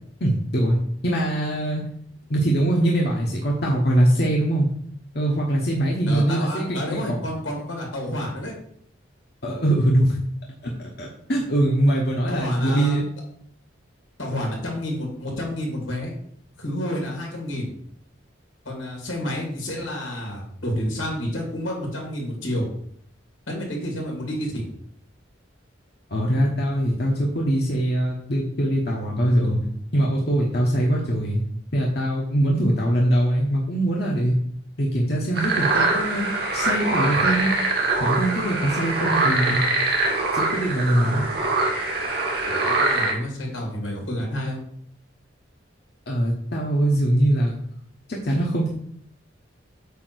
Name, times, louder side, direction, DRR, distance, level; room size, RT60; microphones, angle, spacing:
voice 1, 0.2-0.8 1.0-1.8 2.3-4.7 5.1-7.2 9.4-10.2 10.6-10.7 11.0-13.1 26.1-29.6 29.9-31.4 31.7-34.3 34.8-37.5 38.0-39.6 40.3-41.3 46.1-47.5 48.1-48.7, right 1 dB, 55° left, -2 dB, 1.1 m, -22 dB
voice 2, 6.1-8.5 12.3-13.0 14.2-16.1 16.6-17.7 18.6-22.7 23.5-24.6 42.5-44.6, left 1 dB, 90° left, 0 dB, 2.8 m, -29 dB
sound 1, 35.3-43.1, right 2 dB, 50° right, 1.8 m, -23 dB
8.4 x 3.0 x 6.2 m, 0.65 s
head